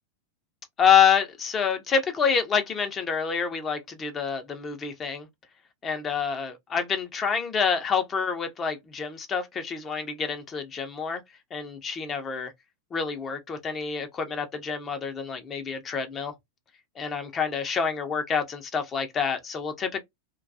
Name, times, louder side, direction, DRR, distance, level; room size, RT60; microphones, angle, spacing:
voice 1, 0.8-5.3 5.8-11.2 11.5-12.5 12.9-16.3 17.0-20.0, left 6 dB, 25° left, 0.5 m, -27 dB
2.2 x 2.2 x 2.6 m
figure-of-eight pair, 90°, 0 cm